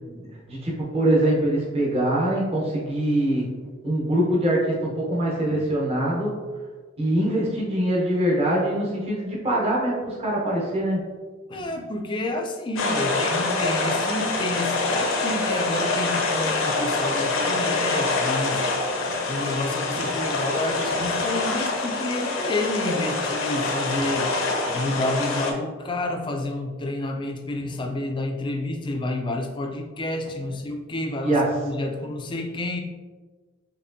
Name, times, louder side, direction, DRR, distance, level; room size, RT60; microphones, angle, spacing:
voice 1, 0.5-3.4 3.8-6.3 7.0-11.0 31.2-31.5, right 1 dB, 30° right, -4 dB, 0.8 m, -23 dB
voice 2, 11.5-18.6 19.0-24.3 24.6-32.8, left 2 dB, 25° left, 4 dB, 0.4 m, -29 dB
sound 1, 12.8-25.5, left 3 dB, 70° left, 0.6 m, -25 dB
4.2 x 3.0 x 2.6 m, 1.4 s
head